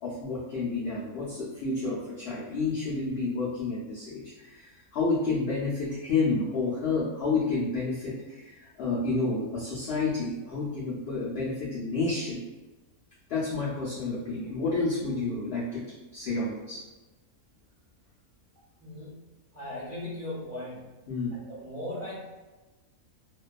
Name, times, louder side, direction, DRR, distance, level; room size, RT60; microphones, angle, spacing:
voice 1, 0.0-12.4 13.3-16.8 21.1-21.4, left 3 dB, 65° left, -7 dB, 0.6 m, -30 dB
voice 2, 18.8-19.3 19.5-20.8 21.5-22.2, left 1 dB, 15° right, -9 dB, 0.7 m, -38 dB
2.6 x 2.2 x 2.2 m, 1.1 s
omnidirectional pair, 1.5 m